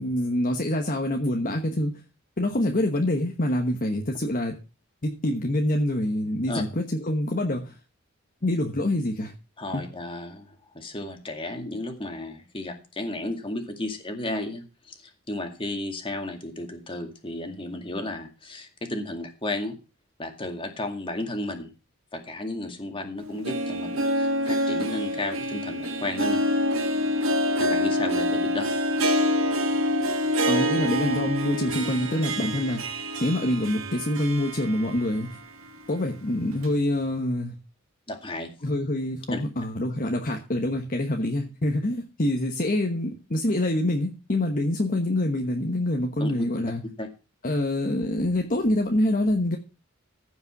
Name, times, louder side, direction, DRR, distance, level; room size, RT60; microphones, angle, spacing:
voice 1, 0.0-1.9 2.4-4.6 5.0-7.8 8.4-9.3 9.7-9.8 30.5-32.8 33.2-35.3 35.9-37.5 38.6-46.8 47.4-49.6, left 1 dB, 40° left, 2 dB, 1.2 m, -26 dB
voice 2, 9.6-10.5 10.7-19.8 20.2-21.7 22.1-26.4 27.6-28.7 38.1-38.5 39.3-39.4 46.2-46.3 47.0-47.1, left 1 dB, 25° left, 5 dB, 2.1 m, -33 dB
Harp, 23.2-35.3 35.7-35.8 36.6-36.7, equal, 75° right, 1.5 m, -26 dB
15.0 x 5.4 x 5.9 m, 0.31 s
head